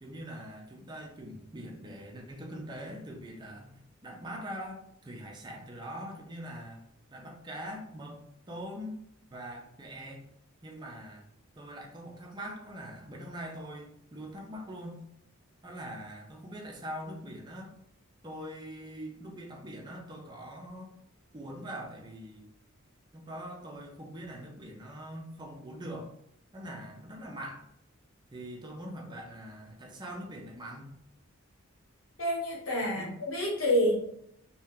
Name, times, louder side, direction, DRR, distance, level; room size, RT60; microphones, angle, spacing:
voice 1, 0.0-6.8 7.1-9.0 9.3-10.2 10.6-11.2 11.6-15.0 15.6-17.7 18.2-20.9 21.3-22.5 23.1-26.2 26.5-27.7 28.3-30.9 32.8-33.1, equal, 20° right, 0 dB, 0.5 m, -43 dB
voice 2, 32.2-34.0, equal, 70° left, -2 dB, 1.1 m, -28 dB
2.7 x 2.2 x 3.5 m, 0.74 s
head